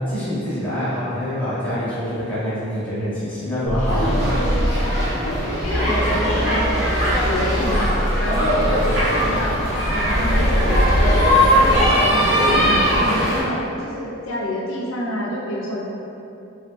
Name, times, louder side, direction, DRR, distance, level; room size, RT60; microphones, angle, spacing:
voice 1, 0.0-4.2, equal, 5° left, -12 dB, 0.8 m, -25 dB
sound 1, 3.7-5.1 5.6-9.1, equal, 30° right, 0.5 m, -25 dB
sound 2, 3.8-13.4, equal, 60° right, 1.0 m, -20 dB
voice 2, 3.9-4.5 5.2-7.9 8.2-9.6 9.9-15.8, equal, 90° left, -4 dB, 0.5 m, -26 dB
3.0 x 2.4 x 2.9 m, 2.8 s
head